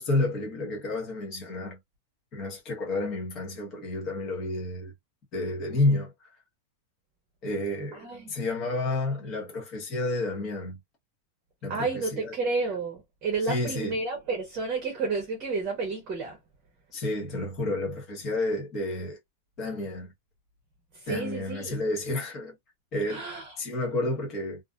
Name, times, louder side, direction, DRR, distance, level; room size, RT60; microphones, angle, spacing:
voice 1, 0.0-1.8 2.3-4.9 5.3-6.3 7.4-10.8 11.6-12.3 13.5-14.0 16.9-19.2 19.6-20.1 21.1-22.5 22.9-23.2 23.6-24.6, left 2 dB, 25° left, 0.9 m, -30 dB
voice 2, 7.9-8.3 11.7-16.4 20.9-21.8 23.1-23.5, right 3 dB, 25° right, 0.8 m, -31 dB
2.5 x 2.4 x 2.3 m
supercardioid pair, 180°, 0 cm